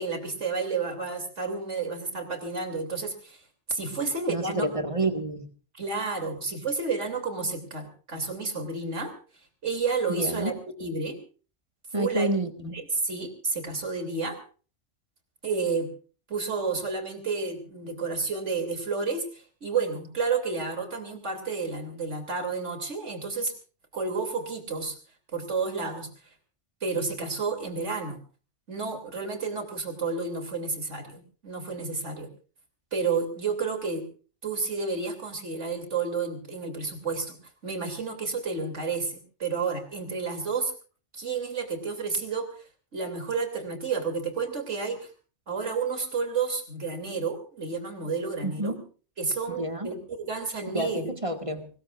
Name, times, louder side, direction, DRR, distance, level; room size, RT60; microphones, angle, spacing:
voice 1, 0.0-3.4 3.7-4.7 5.7-9.1 9.6-10.5 10.8-11.2 12.0-12.3 12.6-14.4 15.4-15.9 16.3-23.5 23.9-25.0 25.3-26.1 26.8-28.2 28.7-32.3 32.9-34.0 34.4-37.4 37.6-40.7 41.1-42.5 42.9-45.1 45.5-48.8 49.2-51.1, right 4 dB, 75° right, 6 dB, 3.4 m, -31 dB
voice 2, 4.0-5.5 10.2-10.5 11.9-12.7 48.4-48.8 49.6-49.9 50.7-51.7, right 2 dB, 25° right, 5 dB, 1.8 m, -29 dB
24.0 x 20.0 x 2.5 m, 0.38 s
omnidirectional pair, 1.2 m